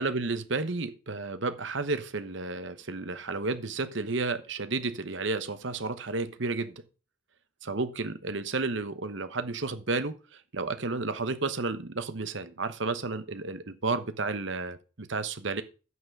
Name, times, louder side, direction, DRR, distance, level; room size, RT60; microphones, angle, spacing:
voice 1, 0.0-6.8 7.6-15.6, right 3 dB, 60° right, 11 dB, 1.1 m, -32 dB
9.4 x 5.9 x 5.4 m, 0.34 s
head